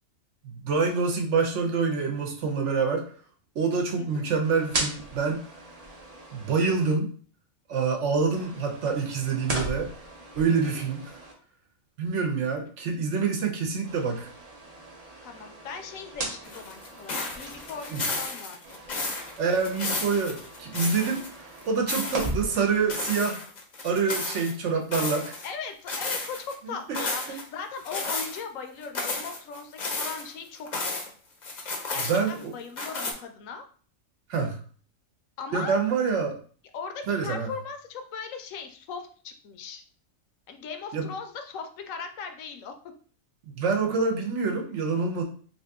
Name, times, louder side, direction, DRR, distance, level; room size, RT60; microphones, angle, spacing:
voice 1, 0.4-3.1 3.5-5.5 6.3-7.1 7.7-9.9 10.4-11.1 12.0-14.3 17.9-18.0 19.4-23.4 23.8-25.4 26.6-27.4 32.0-32.5 34.3-34.6 35.5-36.4 37.1-37.5 40.9-41.1 43.6-45.2, right 5 dB, 65° right, 2 dB, 1.0 m, -26 dB
sound 1, 4.4-6.9 8.3-11.3 13.8-18.3 18.6-23.3, right 2 dB, 40° right, 0.6 m, -38 dB
voice 2, 15.2-18.8 25.4-31.0 31.9-33.6 35.4-35.8 36.7-39.8 40.5-42.7, left 5 dB, 80° left, 6 dB, 1.0 m, -39 dB
sound 2, 16.4-21.3 21.6-22.3 22.9-24.5 24.9-25.5 25.9-26.5 26.9-27.4 27.9-28.4 28.8-31.1 31.4-32.4 32.8-33.1, left 3 dB, 45° left, 0.6 m, -33 dB
2.8 x 2.7 x 3.4 m, 0.44 s
omnidirectional pair, 1.4 m